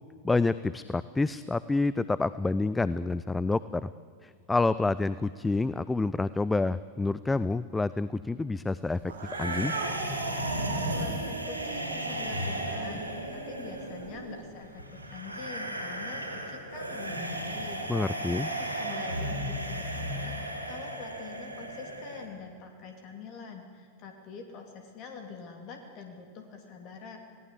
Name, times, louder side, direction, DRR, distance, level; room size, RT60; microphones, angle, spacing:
voice 1, 0.2-3.9 4.2-9.0 9.4-9.7 17.9-18.5, left 3 dB, 10° left, 16 dB, 0.5 m, -28 dB
Cat, 9.0-14.6, right 4 dB, 70° right, 3.3 m, -39 dB
sound 1, 9.3-22.3, right 1 dB, 90° left, 4.2 m, -35 dB
voice 2, 10.9-13.0 13.3-18.0 18.4-27.2, left 5 dB, 40° left, 4 dB, 2.7 m, -45 dB
27.5 x 18.0 x 8.4 m, 2.3 s
figure-of-eight pair, 90°, 0 cm